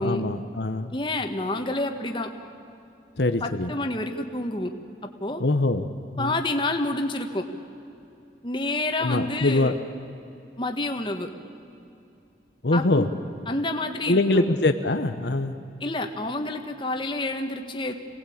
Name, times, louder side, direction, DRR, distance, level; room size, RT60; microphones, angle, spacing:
voice 1, 0.0-0.9 3.2-3.7 5.4-5.9 6.2-6.4 9.0-9.8 12.6-13.1 14.1-15.5, left 2 dB, 70° left, 7 dB, 1.0 m, -23 dB
voice 2, 0.9-2.3 3.4-4.7 5.2-5.4 6.2-7.4 8.4-9.7 10.6-11.3 12.7-13.1 13.5-14.6 15.8-17.9, left 2 dB, 25° left, 5 dB, 1.5 m, -28 dB
27.0 x 18.5 x 8.7 m, 2.7 s
head